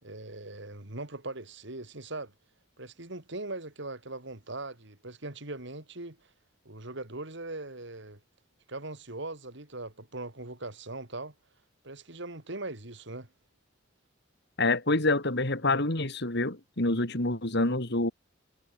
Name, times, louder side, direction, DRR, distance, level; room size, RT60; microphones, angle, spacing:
voice 1, 0.0-2.3 2.8-6.2 6.7-8.2 8.7-11.3 11.8-13.3, right 2 dB, 65° right, 3.7 m, -40 dB
voice 2, 14.6-18.1, left 2 dB, 60° left, 3.4 m, -27 dB
head